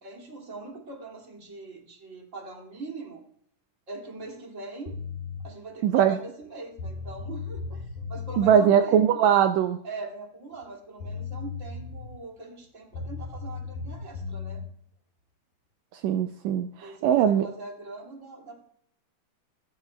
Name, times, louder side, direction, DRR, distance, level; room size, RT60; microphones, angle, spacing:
voice 1, 0.0-3.2 3.9-4.9 5.4-9.2 9.8-14.6 16.8-18.6, right 3 dB, 25° right, 0 dB, 2.2 m, -41 dB
sound 1, 4.9-5.4 6.4-6.5 6.8-8.5 10.6-10.7 11.0-12.2 12.9-14.6, left 5 dB, 70° left, 5.4 m, -36 dB
voice 2, 5.8-6.2 8.4-9.8 16.0-17.5, right 9 dB, 85° right, 7 dB, 1.6 m, -21 dB
15.5 x 14.5 x 2.3 m, 0.68 s
omnidirectional pair, 3.8 m